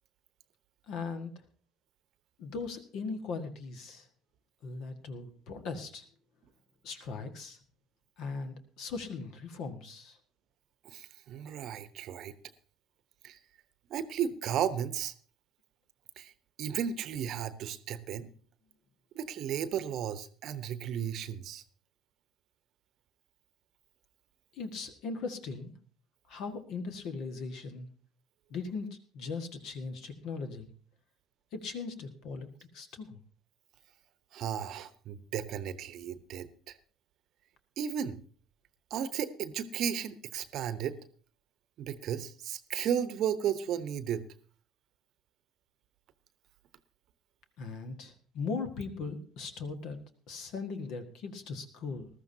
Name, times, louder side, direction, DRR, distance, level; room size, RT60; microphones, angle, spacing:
voice 1, 0.9-1.3 2.4-4.1 4.6-6.0 6.8-7.6 8.2-10.2 24.5-25.7 26.3-27.9 28.5-30.7 31.5-32.5 32.7-33.2 47.6-50.0 50.3-52.1, left 4 dB, 55° left, 8 dB, 1.6 m, -39 dB
voice 2, 10.8-12.3 13.2-13.4 13.9-15.1 16.2-16.3 16.6-18.3 19.1-21.6 34.3-36.8 37.8-38.2 38.9-41.0 41.8-44.3, right 9 dB, 55° right, 14 dB, 0.9 m, -34 dB
20.0 x 13.5 x 2.8 m, 0.43 s
figure-of-eight pair, 60°, 0 cm